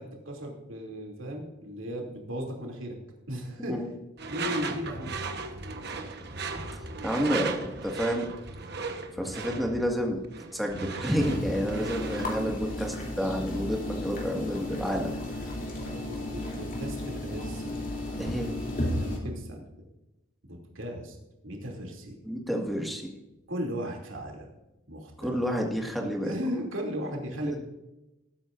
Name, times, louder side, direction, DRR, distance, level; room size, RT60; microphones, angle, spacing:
voice 1, 0.0-3.0 3.3-3.9 4.2-5.2 15.8-17.8 18.9-19.7 20.4-21.2 21.4-22.2 23.5-24.5 24.9-25.4 26.2-27.6, equal, 85° right, 0 dB, 2.8 m, -36 dB
Door / Screech, 4.2-12.4, right 4 dB, 55° right, 1.2 m, -36 dB
voice 2, 7.0-8.3 9.2-10.3 10.5-15.1 18.2-18.6 22.2-23.1 25.2-26.3, equal, ahead, 0 dB, 1.8 m, -30 dB
Pouring hot water, 11.2-19.2, left 1 dB, 40° left, 2.9 m, -34 dB
19.0 x 9.5 x 2.6 m, 0.95 s
head